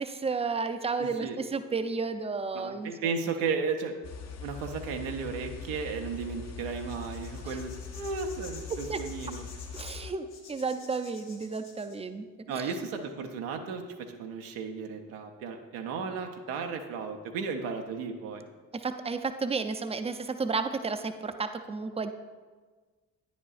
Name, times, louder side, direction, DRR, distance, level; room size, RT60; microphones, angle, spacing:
voice 1, 0.0-2.9 8.7-9.1 9.7-12.3 12.6-12.7 18.7-22.1, right 4 dB, 15° right, 8 dB, 0.4 m, -32 dB
voice 2, 1.0-1.4 2.5-3.9 4.4-9.4 12.5-18.5, right 5 dB, 85° right, 4 dB, 0.7 m, -34 dB
sound 1, 4.0-10.1, left 6 dB, 35° left, 0.6 m, -42 dB
sound 2, 6.8-12.0, left 5 dB, 70° left, 1.3 m, -49 dB
9.7 x 5.1 x 2.4 m, 1.4 s
hypercardioid pair, 40°, 48 cm